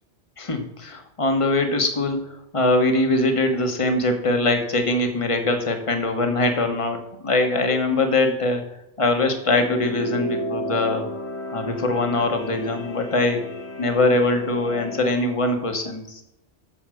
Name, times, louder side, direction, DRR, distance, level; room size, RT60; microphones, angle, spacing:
voice 1, 0.4-8.6 9.0-11.1 11.5-13.4 13.8-16.2, left 2 dB, 30° left, 5 dB, 1.4 m, -22 dB
sound 1, 9.4-15.2, equal, 70° left, 1.4 m, -33 dB
8.3 x 7.2 x 6.3 m, 0.85 s
omnidirectional pair, 1.2 m